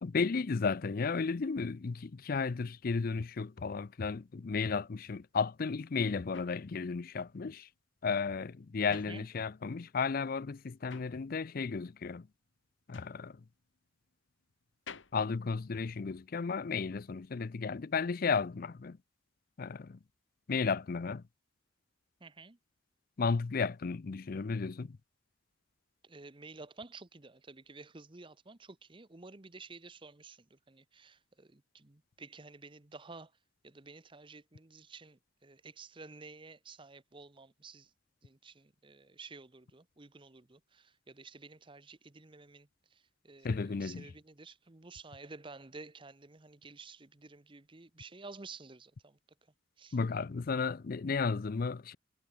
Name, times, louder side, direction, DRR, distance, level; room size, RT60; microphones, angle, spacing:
voice 1, 0.0-7.7 8.0-12.3 12.9-13.4 15.1-19.0 19.6-20.0 20.5-21.2 23.2-25.0 43.4-44.1 49.9-52.0, left 5 dB, 45° left, 0.5 m, -33 dB
sound 1, 6.3-9.9 10.2-16.4, left 6 dB, 75° left, 1.7 m, -55 dB
voice 2, 8.9-9.3 22.2-22.6 26.0-33.3 33.6-37.9 38.2-49.2 49.8-50.0, right 3 dB, 25° right, 0.9 m, -52 dB
head